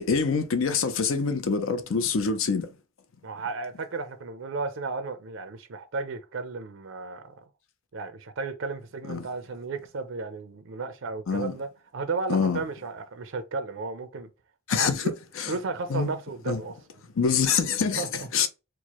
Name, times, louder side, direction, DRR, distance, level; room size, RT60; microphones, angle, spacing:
voice 1, 0.0-2.7 9.1-9.3 11.3-11.5 12.3-12.6 14.7-15.1 15.4-15.5 15.9-16.1 16.5-16.6 17.2-18.1 18.3-18.5, left 5 dB, 70° left, 0.5 m, -25 dB
voice 2, 3.2-7.4 7.9-14.3 14.7-15.1 15.5-16.7 17.9-18.3, right 4 dB, 60° right, 0.5 m, -34 dB
4.5 x 2.1 x 2.9 m
head